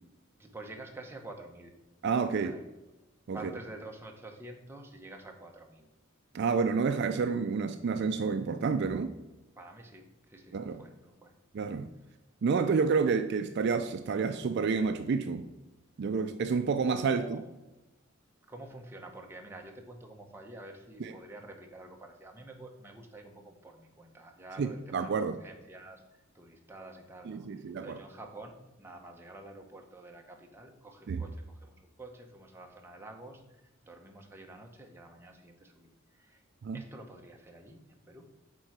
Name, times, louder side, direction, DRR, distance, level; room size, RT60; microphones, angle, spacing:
voice 1, 0.3-1.7 2.2-2.6 3.3-5.9 9.6-11.3 16.8-17.4 18.5-36.4 36.7-38.3, right 2 dB, 10° right, 0.8 m, -49 dB
voice 2, 2.0-2.5 3.3-3.4 6.3-9.1 10.5-10.8 11.5-11.9 12.4-15.5 16.0-17.4 21.0-21.1 24.6-25.4 27.3-28.0 31.1-31.2 36.6-36.8, right 5 dB, 55° right, 0.4 m, -29 dB
8.6 x 3.7 x 4.7 m
head